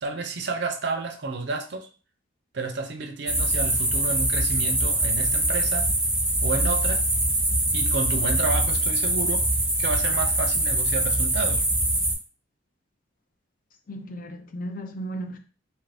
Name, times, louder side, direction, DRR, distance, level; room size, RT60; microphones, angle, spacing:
voice 1, 0.0-1.9 2.5-5.9 6.4-7.0 7.7-9.5 9.8-11.6, right 3 dB, 60° right, 0.5 m, -30 dB
sound 1, 3.3-12.1, right 1 dB, 5° right, 0.7 m, -23 dB
voice 2, 13.9-15.4, right 1 dB, 45° left, 0.4 m, -35 dB
2.9 x 2.5 x 3.3 m
head